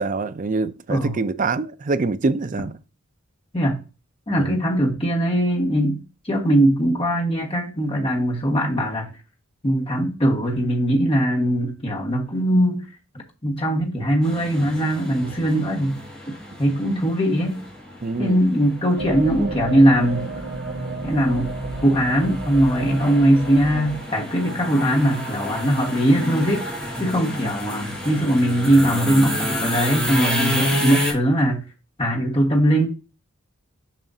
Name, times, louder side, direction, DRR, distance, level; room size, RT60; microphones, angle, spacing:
voice 1, 0.0-2.8 4.4-4.6 18.0-18.4, right 3 dB, 40° right, 0.4 m, -25 dB
voice 2, 0.9-1.2 3.5-3.8 4.3-6.0 6.2-9.1 9.6-12.8 13.4-16.0 16.6-17.6 18.2-20.3 21.0-21.5 21.8-26.6 27.0-31.6 32.0-32.9, right 1 dB, 25° left, 1.5 m, -20 dB
sound 1, 14.2-31.1, left 1 dB, 5° left, 3.5 m, -30 dB
sound 2, 19.0-24.0, right 2 dB, 70° right, 2.8 m, -31 dB
7.3 x 5.7 x 2.7 m
head